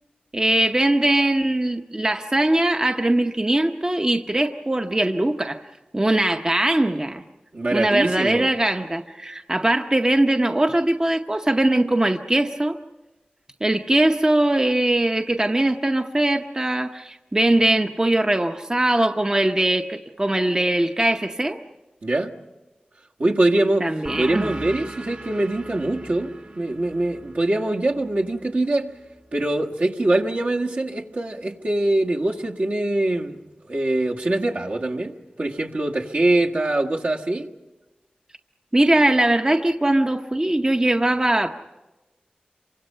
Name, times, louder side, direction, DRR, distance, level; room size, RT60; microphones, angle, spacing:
voice 1, 0.3-5.6 5.9-7.2 7.7-12.8 13.6-21.6 23.8-24.5 38.7-41.5, right 1 dB, 25° right, 5 dB, 0.8 m, -21 dB
voice 2, 7.5-8.5 22.0-22.3 23.2-28.9 29.3-33.4 33.7-37.5, right 2 dB, 60° right, -1 dB, 1.5 m, -23 dB
sound 1, 24.0-29.2, right 2 dB, 45° right, 1.5 m, -39 dB
26.5 x 24.5 x 5.6 m, 1.1 s
wide cardioid pair, 65°, 3 cm